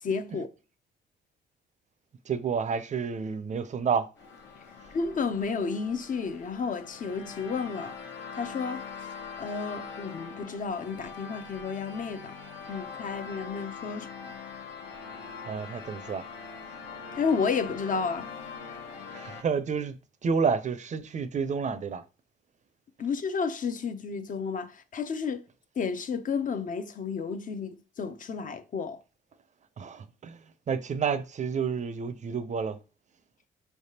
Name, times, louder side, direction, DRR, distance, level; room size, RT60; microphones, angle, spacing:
voice 1, 0.0-0.5 4.9-8.0 8.4-8.8 9.4-12.4 12.7-14.1 17.2-18.3 23.0-25.4 25.8-29.0, left 5 dB, 40° left, 0.6 m, -31 dB
voice 2, 2.3-4.1 13.9-14.0 15.5-16.3 19.1-20.0 20.2-22.0 29.8-30.4 30.7-32.8, right 6 dB, 35° right, 0.5 m, -30 dB
sound 1, 4.2-19.4, left 5 dB, 70° left, 1.0 m, -42 dB
4.6 x 3.3 x 2.8 m
cardioid pair, 90°, 20 cm